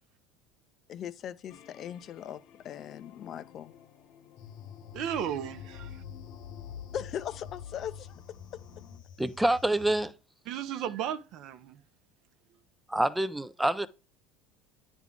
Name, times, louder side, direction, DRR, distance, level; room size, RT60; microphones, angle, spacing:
voice 1, 0.9-3.7 6.9-8.2, left 9 dB, 45° left, 0.5 m, -39 dB
sound 1, 1.5-9.0, left 9 dB, 60° left, 1.0 m, -54 dB
sound 2, 4.4-10.1, left 8 dB, 75° left, 1.4 m, -46 dB
voice 2, 4.9-6.0 10.5-11.8, right 9 dB, 60° right, 0.7 m, -35 dB
voice 3, 9.2-10.1 12.9-13.9, right 1 dB, 5° right, 0.4 m, -26 dB
9.5 x 3.6 x 3.7 m
supercardioid pair, 115°, 0 cm